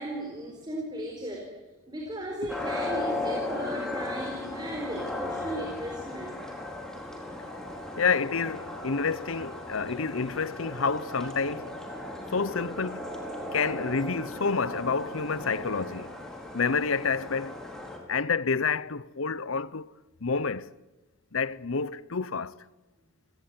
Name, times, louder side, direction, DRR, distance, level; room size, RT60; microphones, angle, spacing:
voice 1, 0.0-1.5 1.9-6.4, right 1 dB, 20° right, 4.2 m, -36 dB
sound 1, 2.5-18.0, left 2 dB, 5° left, 4.4 m, -36 dB
voice 2, 8.0-11.8 12.3-13.0 13.5-16.1 16.5-17.6 18.1-19.9 20.2-20.7 21.3-22.5, left 5 dB, 80° left, 0.8 m, -29 dB
29.0 x 18.5 x 9.4 m
head